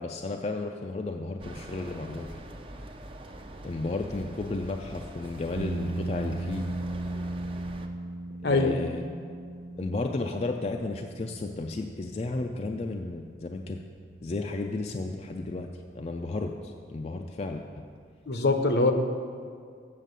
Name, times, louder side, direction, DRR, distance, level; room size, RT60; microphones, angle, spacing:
voice 1, 0.0-2.3 3.6-6.7 8.4-9.0 9.8-13.8 14.2-15.7 15.9-17.8, left 2 dB, 35° left, 3 dB, 0.4 m, -33 dB
sound 1, 1.4-7.9, right 1 dB, 30° right, 0.5 m, -44 dB
sound 2, 5.6-18.1, right 2 dB, 80° right, 0.5 m, -39 dB
voice 2, 8.4-8.7 18.3-18.9, left 2 dB, 70° left, 6 dB, 0.8 m, -23 dB
7.5 x 7.3 x 6.7 m, 2.2 s
head